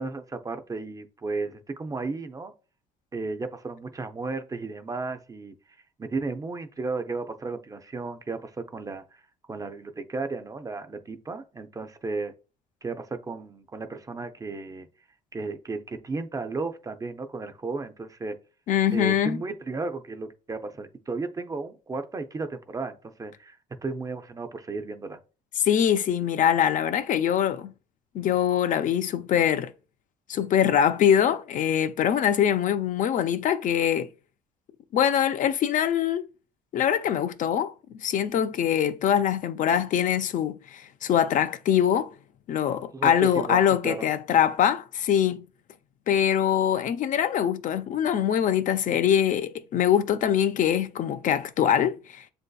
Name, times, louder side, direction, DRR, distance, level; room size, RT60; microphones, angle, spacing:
voice 1, 0.0-2.5 3.1-5.5 6.0-9.2 9.5-12.3 12.8-14.9 15.3-18.4 18.9-23.6 23.8-25.2 42.9-44.0, right 3 dB, 20° right, 0.4 m, -34 dB
voice 2, 18.7-19.4 25.6-27.7 28.1-29.7 30.3-34.1 34.9-36.2 36.7-37.7 38.0-42.1 42.5-45.4 46.1-52.2, left 9 dB, 50° left, 0.4 m, -23 dB
7.3 x 2.6 x 2.3 m
cardioid pair, 110°, 17 cm